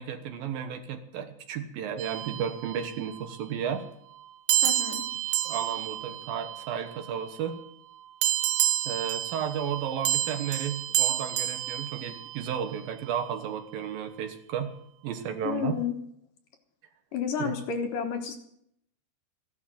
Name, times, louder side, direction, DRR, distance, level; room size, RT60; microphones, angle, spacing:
voice 1, 0.0-3.9 5.4-7.6 8.9-14.7 15.0-15.8 17.4-17.5, right 8 dB, 70° right, 8 dB, 2.7 m, -33 dB
sound 1, 2.0-3.2 4.5-7.2 8.2-12.7, right 15 dB, 85° right, 3.0 m, -30 dB
voice 2, 4.6-5.1 15.4-16.0 17.1-18.4, left 7 dB, 65° left, 5 dB, 2.6 m, -31 dB
15.0 x 11.5 x 7.7 m, 0.72 s
omnidirectional pair, 4.7 m